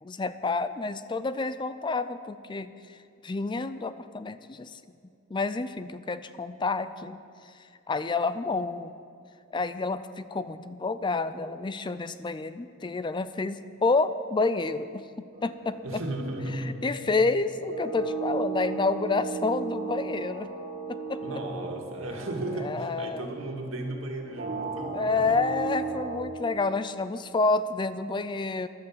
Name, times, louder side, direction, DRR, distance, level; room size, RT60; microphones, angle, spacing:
voice 1, 0.0-3.0 3.2-4.8 5.3-7.2 7.9-8.9 9.5-15.0 15.4-16.0 16.6-20.5 20.9-21.2 22.6-23.3 24.9-28.7, left 3 dB, 20° left, 13 dB, 0.4 m, -29 dB
sound 1, 15.3-26.2, right 4 dB, 45° right, 1.8 m, -36 dB
voice 2, 15.8-16.8 21.2-25.3, right 1 dB, 75° right, 2 dB, 2.2 m, -35 dB
14.0 x 11.5 x 7.3 m, 2.5 s
head